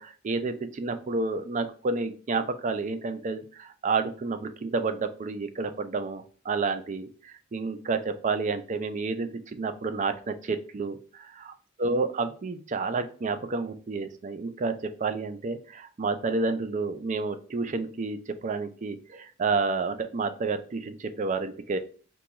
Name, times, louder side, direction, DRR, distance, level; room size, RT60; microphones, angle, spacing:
voice 1, 0.0-21.8, right 4 dB, 35° right, 9 dB, 0.4 m, -30 dB
2.9 x 2.3 x 3.5 m, 0.40 s
head